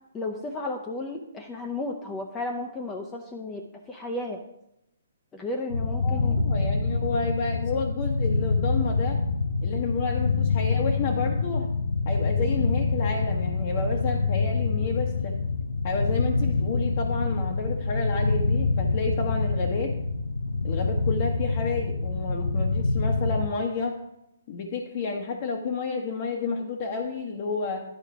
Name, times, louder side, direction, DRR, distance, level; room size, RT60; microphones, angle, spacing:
voice 1, 0.1-4.4 5.3-6.4, left 2 dB, 15° left, 1 dB, 0.8 m, -33 dB
sound 1, 5.7-23.5, left 3 dB, 85° left, 0.5 m, -26 dB
voice 2, 6.0-9.2 9.6-11.7 12.0-15.4 15.8-19.9 20.6-24.0 24.5-27.8, left 4 dB, 45° left, 0 dB, 1.1 m, -30 dB
10.5 x 4.4 x 4.9 m, 0.85 s
figure-of-eight pair, 135°, 0 cm